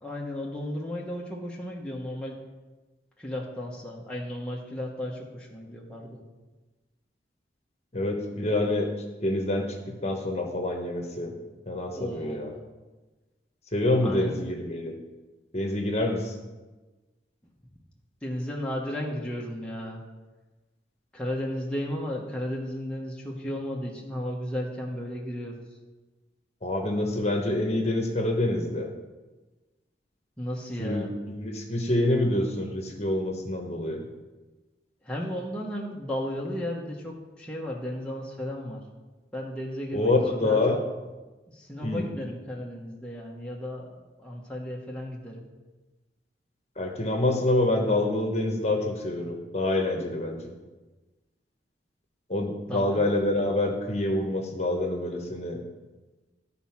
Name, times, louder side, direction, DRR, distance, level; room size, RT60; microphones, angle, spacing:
voice 1, 0.0-2.4 3.2-6.2 11.9-12.6 14.0-14.4 18.2-20.0 21.1-25.6 30.4-31.1 35.0-38.8 39.3-40.7 41.5-45.4 52.7-53.1, left 1 dB, 5° left, -3 dB, 1.0 m, -34 dB
voice 2, 7.9-8.9 9.2-11.3 11.7-12.5 13.7-14.9 15.5-16.3 26.6-28.9 30.8-34.1 39.9-40.8 41.8-42.1 46.8-50.5 52.3-55.6, left 1 dB, 35° left, 2 dB, 1.1 m, -26 dB
12.5 x 4.2 x 5.8 m, 1.2 s
head